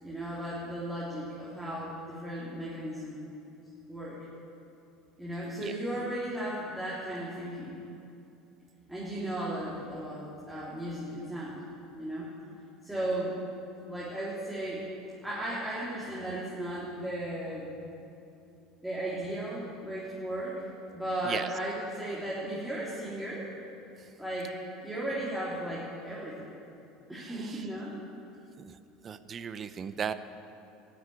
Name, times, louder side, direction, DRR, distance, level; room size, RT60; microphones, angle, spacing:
voice 1, 0.0-3.3 3.9-4.2 5.2-7.8 8.9-11.6 11.9-12.3 12.8-13.4 13.9-14.8 15.2-17.8 18.8-20.7 20.9-23.5 24.2-24.6 24.8-26.6 27.1-28.0, right 1 dB, 5° right, -8 dB, 3.7 m, -35 dB
voice 2, 27.2-27.7 28.6-28.8 29.0-30.1, right 7 dB, 35° right, 13 dB, 0.7 m, -37 dB
13.0 x 8.2 x 9.7 m, 2.7 s
hypercardioid pair, 85°, 0 cm